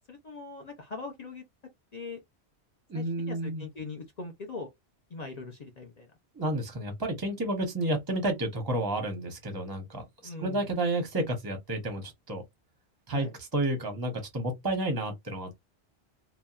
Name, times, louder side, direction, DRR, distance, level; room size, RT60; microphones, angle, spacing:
voice 1, 0.1-1.4 1.9-2.2 2.9-4.7 5.1-6.1 10.2-10.6 13.1-13.3, left 3 dB, 45° left, 0.6 m, -41 dB
voice 2, 2.9-3.7 6.3-12.4 13.1-15.6, right 1 dB, 25° right, 0.7 m, -31 dB
2.7 x 2.1 x 2.3 m
omnidirectional pair, 1.2 m